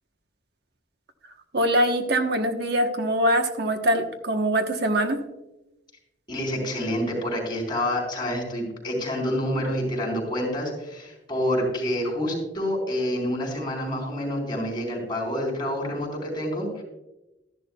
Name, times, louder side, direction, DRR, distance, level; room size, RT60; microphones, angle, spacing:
voice 1, 1.5-5.2, right 1 dB, 65° right, 6 dB, 1.1 m, -23 dB
voice 2, 6.3-16.8, equal, 25° left, 0 dB, 3.6 m, -28 dB
13.0 x 11.0 x 2.3 m, 0.95 s
head